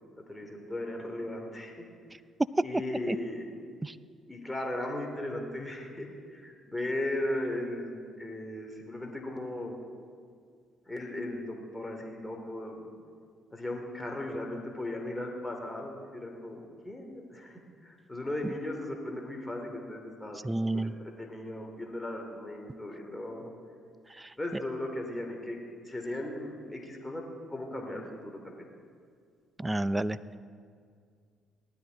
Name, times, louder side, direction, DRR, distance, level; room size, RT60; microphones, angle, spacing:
voice 1, 0.3-1.8 2.6-3.5 4.3-9.8 10.9-12.9 13.5-23.5 24.4-25.6 25.8-27.2 27.5-28.7, left 1 dB, 15° left, 1 dB, 2.7 m, -37 dB
voice 2, 20.4-20.9 24.2-24.3 29.6-30.4, right 1 dB, 15° right, 16 dB, 0.5 m, -30 dB
19.0 x 12.5 x 4.0 m, 2.1 s
hypercardioid pair, 55°, 0 cm